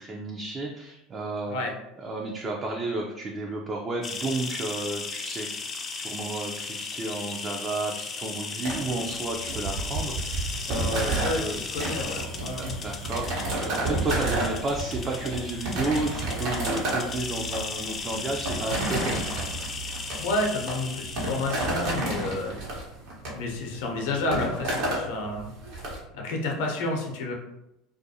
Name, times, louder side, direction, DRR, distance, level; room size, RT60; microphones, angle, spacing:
voice 1, 0.0-1.6 2.0-5.5 5.9-19.5, right 2 dB, 35° right, 0 dB, 0.4 m, -32 dB
sound 1, 4.0-22.4, left 4 dB, 35° left, 0.4 m, -36 dB
sound 2, 8.6-26.0, right 2 dB, 70° right, 0.8 m, -31 dB
voice 2, 11.7-12.8 20.2-22.6 23.3-25.5 26.1-27.3, left 2 dB, 75° left, 0 dB, 0.6 m, -30 dB
2.4 x 2.2 x 2.7 m, 0.85 s
hypercardioid pair, 85°, 0 cm